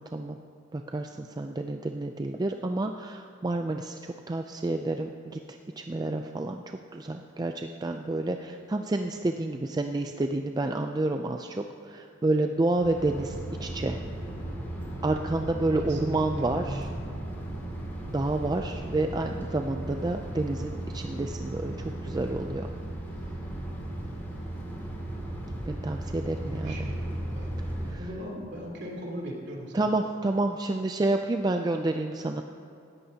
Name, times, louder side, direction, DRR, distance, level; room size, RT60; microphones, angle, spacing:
voice 1, 0.7-14.0 15.0-16.9 18.1-22.7 25.7-26.9 27.9-28.0 29.7-32.4, right 2 dB, 20° right, 5 dB, 0.3 m, -29 dB
sound 1, 12.8-27.9, right 1 dB, 10° left, 2.4 m, -36 dB
voice 2, 15.8-16.9 26.3-27.6 28.0-29.9, equal, 60° right, -2 dB, 3.1 m, -39 dB
18.0 x 13.5 x 2.8 m, 2.7 s
head